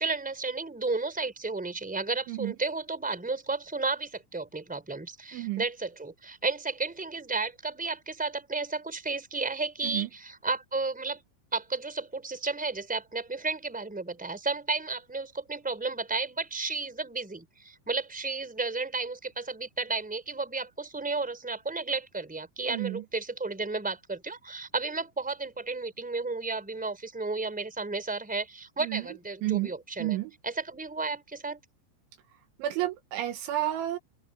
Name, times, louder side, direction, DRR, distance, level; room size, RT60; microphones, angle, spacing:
voice 1, 0.0-11.2 11.5-30.2 30.4-31.6, right 3 dB, ahead, 3.6 m, -33 dB
voice 2, 5.3-5.6 9.8-10.1 22.7-23.0 28.8-29.0 29.4-29.7 30.0-30.3 32.6-34.0, right 14 dB, 75° right, 3.5 m, -30 dB
open air
omnidirectional pair, 5.8 m